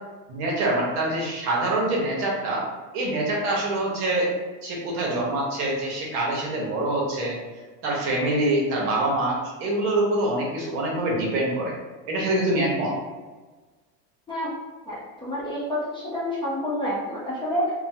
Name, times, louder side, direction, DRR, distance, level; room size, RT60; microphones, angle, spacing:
voice 1, 0.3-2.6 2.9-4.3 4.6-7.4 7.8-11.7 12.1-12.9, right 1 dB, 60° right, -3 dB, 1.0 m, -25 dB
voice 2, 14.9-17.7, equal, 10° left, -9 dB, 0.7 m, -28 dB
2.9 x 2.2 x 2.6 m, 1.3 s
supercardioid pair, 125°, 49 cm